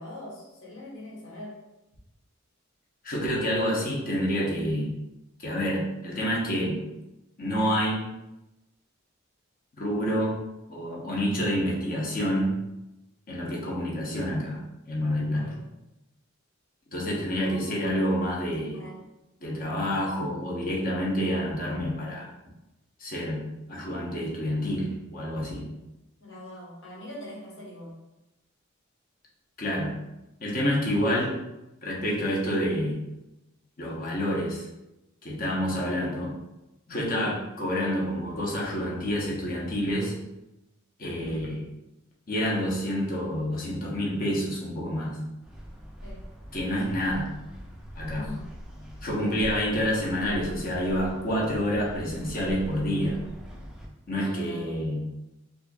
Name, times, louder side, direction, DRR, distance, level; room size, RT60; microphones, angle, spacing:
voice 1, 0.0-1.6 15.3-15.7 17.0-17.8 18.7-19.0 26.2-28.0 46.0-46.3 48.1-48.5 54.1-54.8, left 1 dB, 70° left, -4 dB, 1.1 m, -42 dB
voice 2, 3.0-4.9 5.4-6.8 7.4-8.0 9.8-10.4 10.7-12.5 13.3-14.6 14.9-15.6 16.9-18.8 19.4-22.3 23.0-23.4 23.7-25.7 29.6-29.9 30.4-31.3 31.8-32.9 33.8-34.7 35.2-36.3 36.9-40.1 41.0-41.7 42.3-45.2 46.5-47.3 48.0-48.2 49.0-53.2 54.1-55.0, equal, 45° left, -4 dB, 0.9 m, -28 dB
sound 1, 45.4-53.9, equal, 5° right, 0.4 m, -41 dB
4.3 x 2.5 x 2.3 m, 0.95 s
head